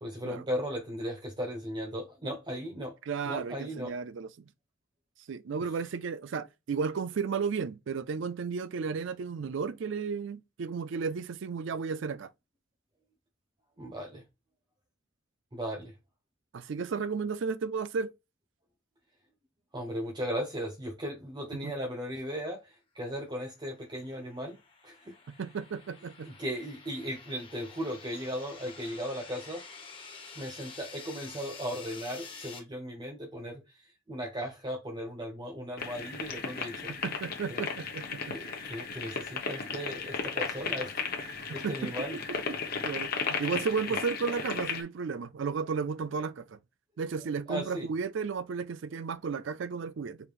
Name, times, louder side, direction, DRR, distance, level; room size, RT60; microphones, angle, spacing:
voice 1, 0.0-2.9 3.3-3.9 5.6-5.7 13.8-14.2 15.5-15.9 19.7-24.6 24.8-25.1 26.2-29.6 30.3-36.9 37.5-37.6 38.3-40.9 41.2-42.2 47.5-47.9, equal, 20° right, 0.6 m, -37 dB
voice 2, 3.1-4.3 5.3-12.3 16.5-18.1 21.6-21.7 25.4-26.3 36.9-38.3 41.5-42.2 42.8-46.6 47.0-50.2, right 5 dB, 60° right, 0.4 m, -33 dB
sound 1, 23.6-32.6, left 5 dB, 25° left, 1.1 m, -49 dB
sound 2, 35.8-44.8, left 5 dB, 45° left, 0.9 m, -35 dB
5.0 x 3.2 x 2.4 m
head